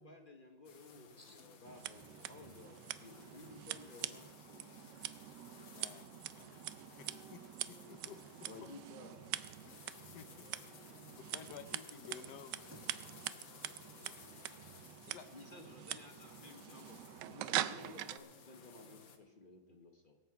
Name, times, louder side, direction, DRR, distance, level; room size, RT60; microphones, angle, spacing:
voice 1, 0.0-5.0 7.1-8.2 8.5-9.2 10.4-10.7 15.3-20.1, left 2 dB, 35° left, 4 dB, 1.0 m, -56 dB
sound 1, 0.6-19.2, left 5 dB, 55° left, 1.5 m, -58 dB
Scissors, 1.7-18.2, right 13 dB, 90° right, 1.2 m, -44 dB
voice 2, 5.7-6.1 6.3-6.7 7.0-7.4 7.7-8.2 9.6-9.8 10.1-10.8 11.1-12.7 15.0-15.3, left 8 dB, 75° left, 10 dB, 1.3 m, -53 dB
voice 3, 6.4-7.2 7.9-8.1 12.0-12.2 13.0-15.2, equal, 10° right, 2 dB, 1.3 m, -65 dB
23.0 x 7.9 x 4.7 m, 1.5 s
omnidirectional pair, 1.8 m